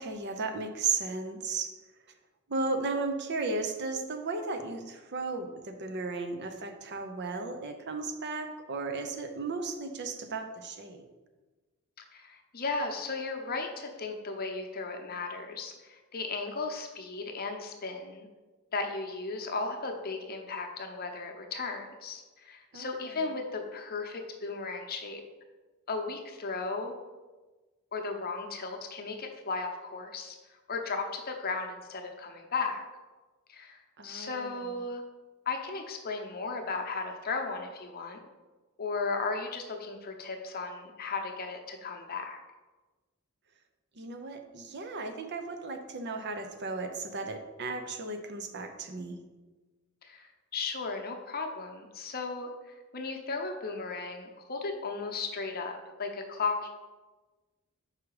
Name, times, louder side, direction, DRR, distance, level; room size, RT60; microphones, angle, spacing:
voice 1, 0.0-1.7 2.5-11.0 22.7-23.4 34.0-34.8 43.9-49.2, right 3 dB, 55° right, 6 dB, 0.7 m, -35 dB
voice 2, 12.1-18.3 18.7-25.2 25.9-26.9 27.9-30.3 30.7-32.8 33.5-35.0 35.5-38.2 38.8-42.4 50.0-52.5 52.9-56.7, left 4 dB, 45° left, 3 dB, 0.8 m, -35 dB
6.0 x 4.9 x 4.7 m, 1.3 s
head